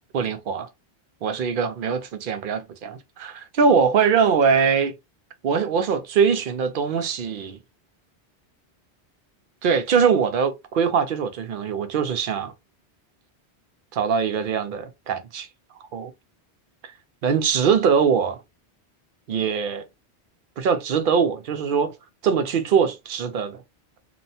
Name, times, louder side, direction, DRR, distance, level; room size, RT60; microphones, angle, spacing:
voice 1, 0.1-0.7 1.2-4.9 5.4-7.6 9.6-12.5 13.9-15.5 15.8-16.1 17.2-18.4 19.3-19.9 20.6-21.9 22.2-23.6, right 6 dB, 60° right, 0.6 m, -22 dB
2.9 x 2.1 x 2.7 m
omnidirectional pair, 1.1 m